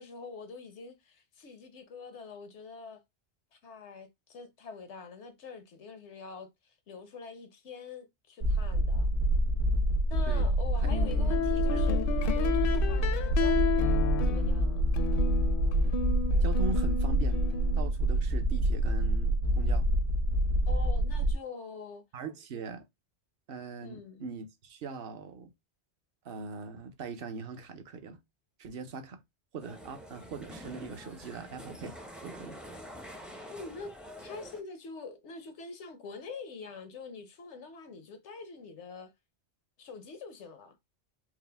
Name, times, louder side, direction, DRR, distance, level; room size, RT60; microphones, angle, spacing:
voice 1, 0.0-3.0 3.5-9.1 10.1-12.0 12.3-14.8 20.7-22.0 23.8-24.2 33.5-33.9 34.2-39.1 39.8-40.7, left 4 dB, 90° left, 1.2 m, -45 dB
sound 1, 8.4-21.4, right 1 dB, 90° right, 1.3 m, -27 dB
sound 2, 10.8-17.9, left 7 dB, 60° left, 0.7 m, -33 dB
voice 2, 10.8-11.2 11.7-11.9 16.4-17.4 17.8-19.9 22.1-22.8 23.5-25.5 26.2-28.2 28.6-29.2 29.5-31.9 32.2-32.6, right 5 dB, 60° right, 0.9 m, -41 dB
sound 3, 29.6-34.6, equal, ahead, 0.4 m, -46 dB
4.7 x 2.1 x 3.3 m
omnidirectional pair, 1.1 m